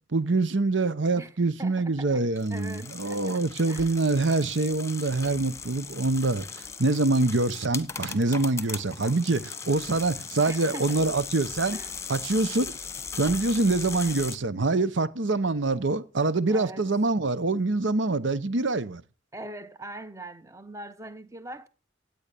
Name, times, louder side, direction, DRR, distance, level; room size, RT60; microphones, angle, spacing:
voice 1, 0.1-11.8 12.1-12.8 13.2-19.0, right 3 dB, 85° right, 0.9 m, -25 dB
voice 2, 1.6-3.9 10.5-11.1 11.7-11.9 16.5-16.8 19.3-21.7, right 1 dB, 15° right, 1.1 m, -42 dB
sound 1, 2.4-14.4, left 5 dB, 15° left, 1.4 m, -38 dB
17.5 x 9.7 x 6.8 m
head